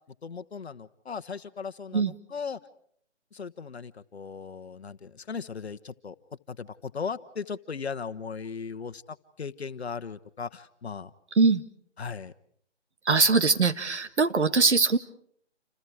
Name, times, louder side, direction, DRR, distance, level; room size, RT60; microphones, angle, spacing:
voice 1, 0.2-2.6 3.3-6.2 6.5-11.1 12.0-12.3, left 5 dB, 60° left, 11 dB, 1.3 m, -37 dB
voice 2, 13.1-15.0, right 4 dB, 70° right, 10 dB, 1.8 m, -22 dB
28.5 x 28.0 x 4.8 m, 0.65 s
figure-of-eight pair, 155°, 36 cm